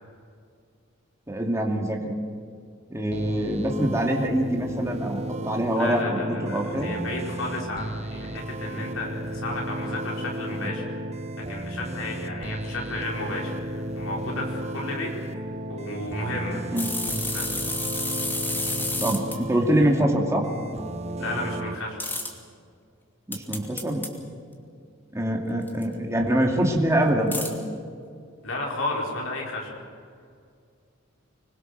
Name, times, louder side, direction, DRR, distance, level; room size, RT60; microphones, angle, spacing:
voice 1, 1.3-2.1 2.9-6.9 16.7-16.9 19.0-20.4 23.3-24.0 25.1-27.6, right 1 dB, 15° right, 0 dB, 2.5 m, -24 dB
sound 1, 3.1-21.8, right 1 dB, 35° right, 1.0 m, -34 dB
voice 2, 5.8-10.8 11.5-15.1 15.7-16.7 17.3-17.5 21.2-22.0 28.4-29.8, left 2 dB, 85° left, -2 dB, 5.0 m, -33 dB
sound 2, 16.8-19.4 22.0-22.3 23.3-24.1 25.7-25.8 27.3-27.5, left 2 dB, 10° left, 2.7 m, -30 dB
25.5 x 21.5 x 6.7 m, 2.2 s
head